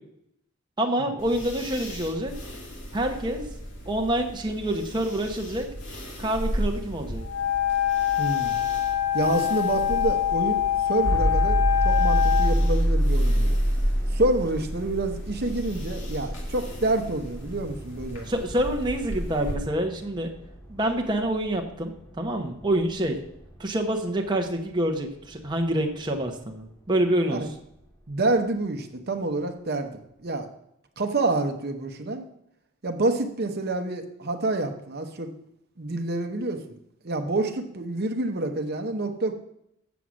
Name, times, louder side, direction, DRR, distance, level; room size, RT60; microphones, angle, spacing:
voice 1, 0.8-2.3 2.9-3.4 3.9-5.7 6.2-7.2 18.3-20.3 20.7-21.9 22.2-23.2 23.6-27.5, right 1 dB, 20° right, 2 dB, 0.9 m, -27 dB
sound 1, 1.2-19.6, equal, 55° left, 2.1 m, -37 dB
Wind instrument woodwind instrument, 7.2-12.5, left 10 dB, 80° left, 1.6 m, -24 dB
voice 2, 8.2-8.6 9.1-11.6 11.8-13.6 14.1-18.3 27.3-27.5 28.1-30.5 31.0-32.3 32.8-35.3 35.8-36.6 37.0-39.3, right 2 dB, 50° right, 6 dB, 0.9 m, -27 dB
sound 2, 11.0-27.0, equal, 10° left, 1.4 m, -28 dB
7.6 x 7.1 x 6.2 m, 0.77 s
head